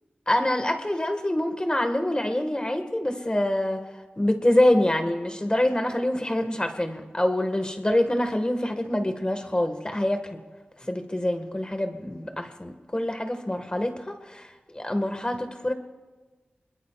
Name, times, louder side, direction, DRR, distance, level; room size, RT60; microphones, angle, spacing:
voice 1, 0.3-3.8 4.2-10.4 10.8-14.4 14.7-15.7, left 1 dB, 25° left, 6 dB, 1.7 m, -25 dB
26.5 x 21.5 x 2.5 m, 1.3 s
wide cardioid pair, 60°, 4 cm